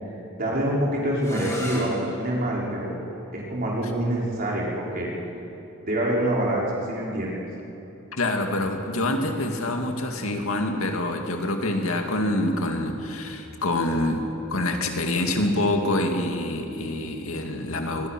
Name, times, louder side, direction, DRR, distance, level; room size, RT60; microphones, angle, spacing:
voice 1, 0.4-3.0 3.3-5.1 5.9-7.4, right 1 dB, 45° right, -4 dB, 5.3 m, -26 dB
sound 1, 1.2-6.9, left 1 dB, 15° left, 3.3 m, -41 dB
voice 2, 8.2-18.1, left 1 dB, 90° left, 3 dB, 2.2 m, -26 dB
sound 2, 8.6-14.3, equal, 5° right, 4.3 m, -46 dB
25.0 x 21.0 x 6.2 m, 2.9 s
head